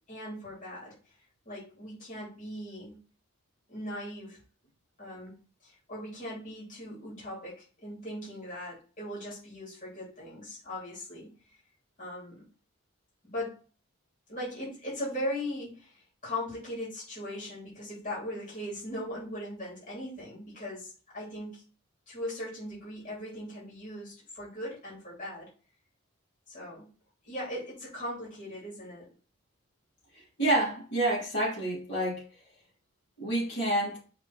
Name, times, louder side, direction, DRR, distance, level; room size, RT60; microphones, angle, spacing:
voice 1, 0.1-1.1 1.4-3.0 3.7-4.4 5.0-5.3 5.6-11.6 12.0-12.4 13.2-13.6 14.3-21.6 22.1-25.5 26.5-26.9 27.2-29.1, left 1 dB, 35° left, 3.2 m, -39 dB
voice 2, 30.4-32.2 33.2-34.0, right 1 dB, 60° left, 3.3 m, -28 dB
5.9 x 3.8 x 4.7 m
head